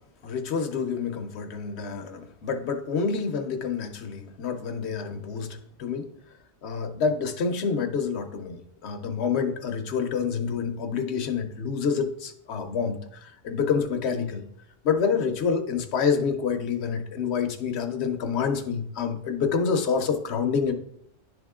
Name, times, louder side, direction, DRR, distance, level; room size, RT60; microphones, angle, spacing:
voice 1, 0.2-6.1 6.6-14.4 14.8-20.7, left 6 dB, 70° left, 6 dB, 1.0 m, -27 dB
10.5 x 3.6 x 3.6 m, 0.71 s
omnidirectional pair, 1.1 m